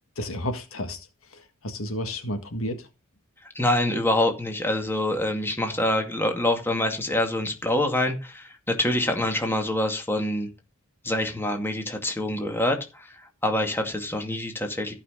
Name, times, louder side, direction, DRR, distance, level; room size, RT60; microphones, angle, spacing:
voice 1, 0.2-2.9, left 1 dB, 70° left, 1.7 m, -32 dB
voice 2, 3.5-10.5 11.0-13.1 13.4-14.9, left 1 dB, 10° left, 2.2 m, -25 dB
15.0 x 5.8 x 5.1 m
head